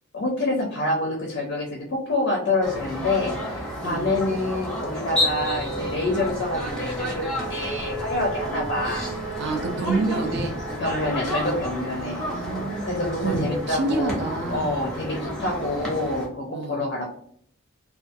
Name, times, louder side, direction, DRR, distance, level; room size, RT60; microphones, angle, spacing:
voice 1, 0.1-9.1 10.8-12.2 12.8-14.2 14.5-17.0, left 2 dB, 50° left, 0 dB, 0.5 m, -27 dB
sound 1, 2.6-16.3, left 1 dB, 5° left, 0.6 m, -31 dB
sound 2, 5.2-15.9, right 2 dB, 75° right, 0.9 m, -37 dB
voice 2, 9.3-10.5 11.9-14.7 16.5-16.9, right 3 dB, 50° right, 3 dB, 0.3 m, -29 dB
2.3 x 2.3 x 2.6 m, 0.64 s
head